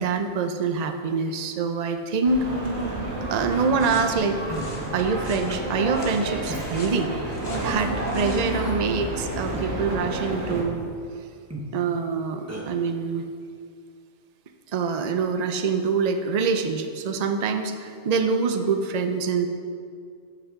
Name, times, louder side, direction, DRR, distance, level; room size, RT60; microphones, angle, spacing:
voice 1, 0.0-2.4 3.3-4.4 4.9-7.1 7.6-10.9 11.7-13.3 14.7-19.5, right 5 dB, 85° right, 6 dB, 0.3 m, -25 dB
sound 1, 2.2-10.6, right 1 dB, 70° right, 1.7 m, -30 dB
Human voice, 3.5-3.7 4.5-4.7 5.5-5.7 6.5-6.7 7.5-7.6 8.5-8.8 9.5-9.7 10.5-10.7 11.5-11.7 12.5-12.6, right 1 dB, 15° right, 0.8 m, -35 dB
sound 2, 3.8-8.5, left 2 dB, 70° left, 1.6 m, -44 dB
14.0 x 5.8 x 3.6 m, 2.2 s
omnidirectional pair, 1.4 m